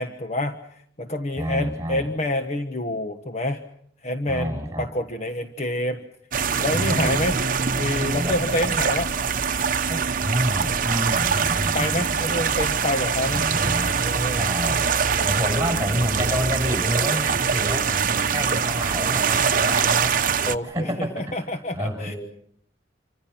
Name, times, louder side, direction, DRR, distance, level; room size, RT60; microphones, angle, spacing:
voice 1, 0.0-3.6 4.0-6.0 6.6-7.4 7.8-9.1 9.9-10.1 11.7-13.5 13.7-14.5 15.2-15.8 20.5-20.9 21.2-22.1, left 1 dB, 35° left, 6 dB, 1.3 m, -28 dB
voice 2, 1.4-2.1 4.3-4.9 6.7-7.3 8.1-8.7 10.2-12.6 13.3-13.9 14.4-14.9 15.2-20.2 20.6-21.3 21.7-22.2, equal, 15° right, 5 dB, 7.5 m, -28 dB
sound 1, 6.3-20.6, right 6 dB, 45° right, 1.0 m, -23 dB
28.0 x 25.5 x 5.9 m, 0.68 s
head